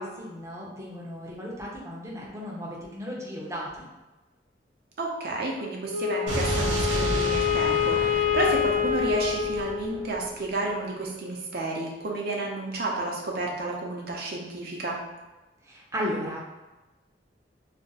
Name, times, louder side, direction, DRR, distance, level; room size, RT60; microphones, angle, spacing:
voice 1, 0.0-3.9 15.7-16.4, equal, 15° right, -4 dB, 0.6 m, -35 dB
voice 2, 5.0-15.0, right 2 dB, 60° right, -1 dB, 0.6 m, -31 dB
Wind instrument woodwind instrument, 5.9-10.3, left 8 dB, 75° left, 0.6 m, -26 dB
Explosion, 6.3-10.3, right 1 dB, 85° right, 0.8 m, -31 dB
2.5 x 2.1 x 3.9 m, 1.1 s
head